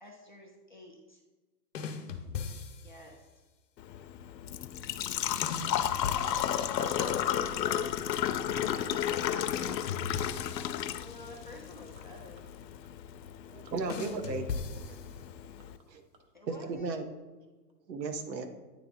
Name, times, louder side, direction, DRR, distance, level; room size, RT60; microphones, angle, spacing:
voice 1, 0.0-1.2 2.8-3.3 5.4-6.7 7.1-7.3 11.0-12.5 16.3-17.0, left 2 dB, 35° left, -1 dB, 0.4 m, -51 dB
sound 1, 1.7-3.2 5.4-7.4 9.5-11.7 13.9-15.5, left 5 dB, 50° left, 0.8 m, -40 dB
Engine / Trickle dribble / Fill (with liquid), 3.8-15.8, left 10 dB, 90° left, 0.6 m, -33 dB
sound 2, 5.2-10.2, left 3 dB, 5° left, 0.9 m, -53 dB
voice 2, 6.8-9.9 14.9-15.3, right 2 dB, 30° right, 4 dB, 0.8 m, -49 dB
voice 3, 13.5-14.5 15.9-16.0 16.5-17.0 17.9-18.5, right 4 dB, 90° right, 8 dB, 1.0 m, -35 dB
9.3 x 3.3 x 3.9 m, 1.3 s
hypercardioid pair, 165°, 49 cm